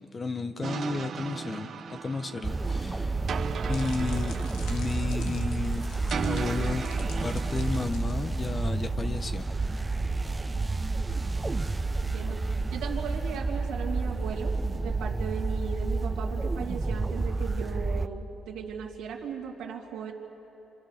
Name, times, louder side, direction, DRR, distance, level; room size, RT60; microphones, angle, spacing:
voice 1, 0.1-3.2 3.7-4.4 4.7-6.9 7.2-9.4, left 3 dB, 30° left, 9 dB, 1.0 m, -33 dB
sound 1, 0.6-7.9, right 6 dB, 55° right, 1.2 m, -37 dB
sound 2, 2.4-18.1, right 3 dB, 20° right, 0.7 m, -30 dB
sound 3, 3.2-8.6, left 4 dB, 90° left, 2.0 m, -49 dB
voice 2, 12.0-20.1, right 7 dB, 90° right, -3 dB, 2.5 m, -37 dB
27.0 x 26.5 x 6.5 m, 3.0 s
cardioid pair, 90°, 0 cm